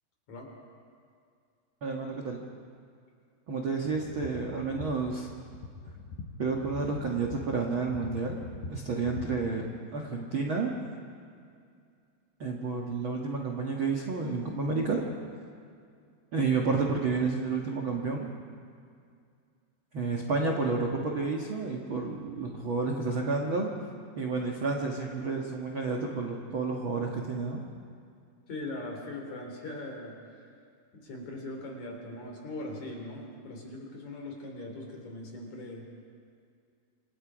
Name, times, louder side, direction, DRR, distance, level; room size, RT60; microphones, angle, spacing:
voice 1, 1.8-2.4 3.5-5.3 6.4-8.4 8.7-10.7 12.4-15.0 16.3-18.3 19.9-23.7 24.1-27.6, right 4 dB, 75° right, 0 dB, 1.1 m, -30 dB
sound 1, 3.9-9.5, left 3 dB, 90° left, 5.4 m, -43 dB
voice 2, 28.5-30.1 30.9-35.9, left 2 dB, 45° left, 1 dB, 4.4 m, -40 dB
27.5 x 25.5 x 5.1 m, 2.3 s
omnidirectional pair, 5.0 m